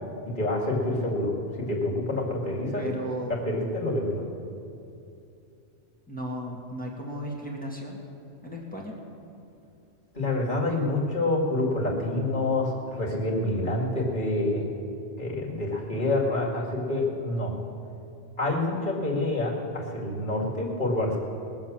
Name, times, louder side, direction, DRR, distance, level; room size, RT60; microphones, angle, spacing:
voice 1, 0.2-2.9 3.3-4.2 10.1-14.7 15.2-17.5 18.4-21.2, left 2 dB, 45° left, -3 dB, 2.4 m, -27 dB
voice 2, 2.8-3.6 6.1-8.0 8.4-8.9, right 1 dB, 5° left, -2 dB, 1.8 m, -35 dB
20.0 x 7.3 x 7.3 m, 2.7 s
omnidirectional pair, 1.2 m